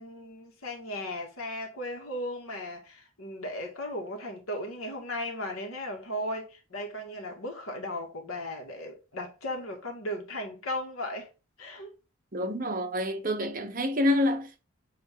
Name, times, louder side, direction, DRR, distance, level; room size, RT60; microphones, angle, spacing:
voice 1, 0.0-11.3 11.6-11.9, left 1 dB, 80° left, 2.2 m, -36 dB
voice 2, 12.3-14.7, left 1 dB, 40° right, 1.1 m, -27 dB
8.0 x 3.4 x 3.8 m
head